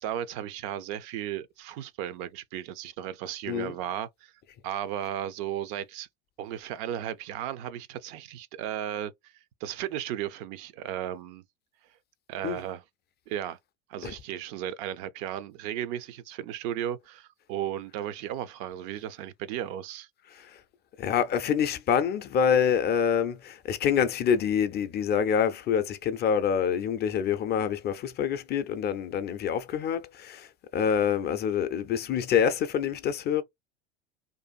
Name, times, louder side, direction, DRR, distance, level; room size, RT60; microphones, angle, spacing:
voice 1, 0.0-4.3 4.6-6.1 6.4-9.3 9.6-11.4 12.3-12.8 13.3-13.6 13.9-20.1, right 11 dB, 60° right, 0.5 m, -35 dB
voice 2, 21.0-30.5 30.7-33.4, left 8 dB, 35° left, 0.4 m, -26 dB
2.6 x 2.4 x 2.3 m
hypercardioid pair, 80°, 32 cm